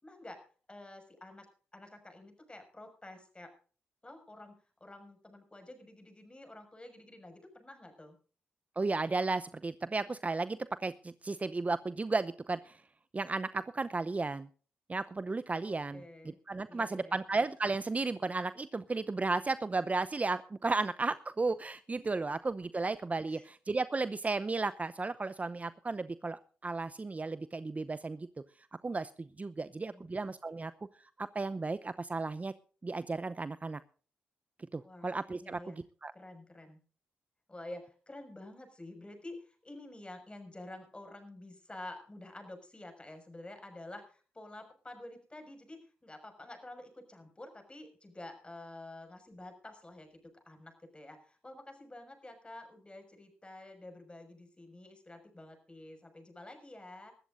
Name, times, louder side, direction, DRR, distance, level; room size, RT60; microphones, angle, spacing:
voice 1, 0.0-0.4 0.7-1.5 1.7-3.5 4.0-8.2 15.5-16.4 16.7-17.3 22.0-22.3 23.2-23.4 29.6-30.1 34.8-35.1 35.4-35.8 36.1-36.8 37.5-50.1 50.3-57.1, left 1 dB, 20° left, 7 dB, 6.0 m, -49 dB
voice 2, 8.8-12.8 13.1-14.5 14.9-28.3 28.8-30.7 31.2-32.5 32.8-33.8 34.7-35.7 36.0-36.1, right 3 dB, 30° right, 14 dB, 0.7 m, -34 dB
22.5 x 13.5 x 2.6 m, 0.39 s
supercardioid pair, 45°, 5 cm